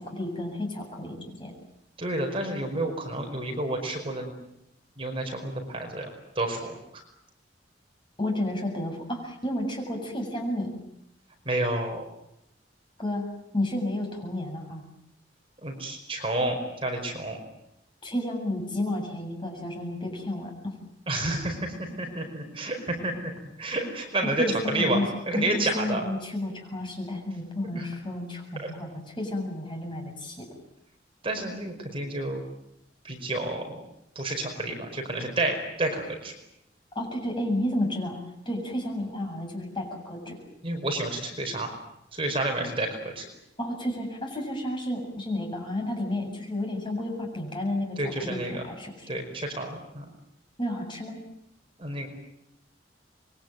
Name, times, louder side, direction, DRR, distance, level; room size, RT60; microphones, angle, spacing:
voice 1, 0.0-1.5 8.2-10.7 13.0-14.8 18.0-20.7 24.2-30.5 36.9-38.2 38.5-40.4 43.6-49.1 50.6-51.2, left 1 dB, 25° left, 2 dB, 7.6 m, -31 dB
voice 2, 2.0-4.3 5.0-6.1 6.3-7.0 11.4-12.0 15.6-17.4 21.1-23.3 23.6-25.0 25.3-26.0 27.6-27.8 28.6-28.7 31.2-32.4 33.0-33.8 34.1-36.3 40.6-41.7 42.1-42.9 43.1-43.3 48.0-48.6 49.1-50.0 51.8-52.1, right 2 dB, 30° right, 3 dB, 5.1 m, -30 dB
26.5 x 23.0 x 9.3 m, 0.81 s
head